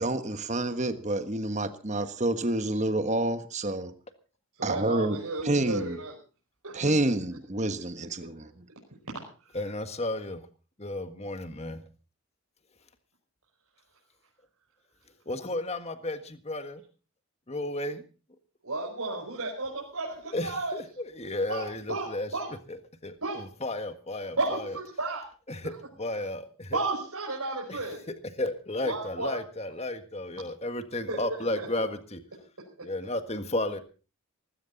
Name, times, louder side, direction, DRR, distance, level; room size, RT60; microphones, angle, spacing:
voice 1, 0.0-3.9 4.6-6.0 6.7-8.7, right 2 dB, 30° right, 9 dB, 1.3 m, -28 dB
voice 2, 4.6-6.1 6.6-6.9 18.6-20.8 21.5-22.5 23.2-23.4 24.4-25.3 25.6-25.8 26.7-28.0 28.8-29.4 31.1-31.2 31.5-31.7, right 2 dB, 80° right, -3 dB, 5.4 m, -33 dB
voice 3, 9.5-10.4 10.8-11.8 15.3-16.8 17.5-18.0 20.3-22.3 23.0-23.1 23.6-24.6 25.5-26.8 27.7-27.8 28.4-32.2 32.8-33.8, left 1 dB, 30° left, 9 dB, 1.6 m, -33 dB
19.5 x 16.0 x 4.0 m, 0.36 s
head